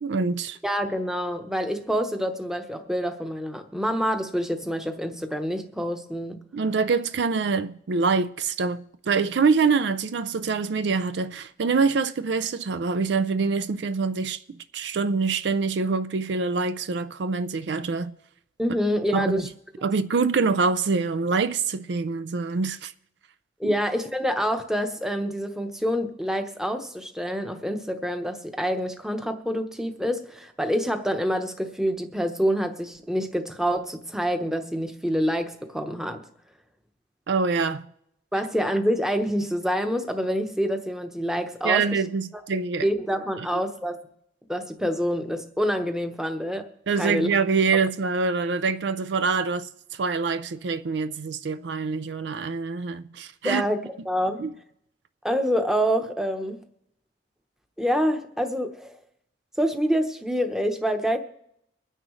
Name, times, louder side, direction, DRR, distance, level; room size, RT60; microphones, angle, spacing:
voice 1, 0.0-0.6 6.5-18.1 19.1-19.4 19.8-22.9 23.6-23.7 37.3-37.9 41.6-42.9 43.4-43.6 46.9-53.6 54.4-54.5, right 4 dB, 65° right, 0.4 m, -25 dB
voice 2, 0.6-6.4 18.6-19.5 23.6-36.2 38.3-41.8 42.8-44.0 44.5-46.7 47.0-47.3 53.4-53.8 54.0-54.4 55.2-56.6 57.8-59.0 59.6-61.2, equal, 5° right, 0.9 m, -26 dB
23.5 x 9.9 x 3.2 m
head